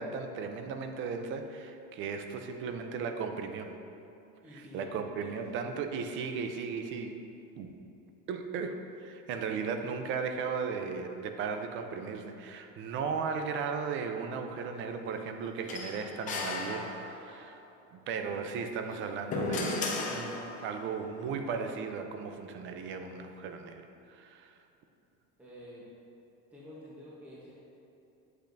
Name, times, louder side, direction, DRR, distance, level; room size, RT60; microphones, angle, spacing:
voice 1, 0.0-3.7 4.5-7.2 7.6-7.8 8.3-17.6 17.9-24.6, right 5 dB, 40° right, 6 dB, 0.5 m, -36 dB
voice 2, 4.4-5.6 25.4-25.9 26.5-27.5, left 1 dB, 5° right, -8 dB, 0.9 m, -49 dB
sound 1, 15.7-17.4 18.8-20.8, left 3 dB, 25° left, 0.7 m, -35 dB
8.7 x 7.8 x 2.6 m, 2.8 s
cardioid pair, 170°, 31 cm